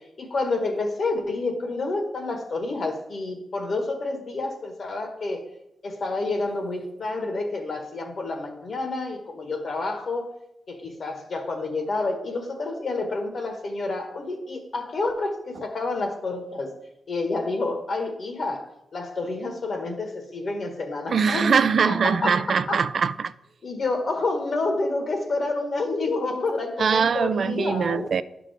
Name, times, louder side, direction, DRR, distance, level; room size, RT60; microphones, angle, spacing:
voice 1, 0.2-5.4 5.8-10.3 10.7-16.7 17.1-21.6 21.9-22.9 23.6-28.1, left 3 dB, 55° left, 1.4 m, -29 dB
voice 2, 21.1-23.3 26.8-28.2, right 6 dB, 60° right, 0.4 m, -22 dB
11.0 x 6.1 x 3.5 m
cardioid pair, 100°, 0 cm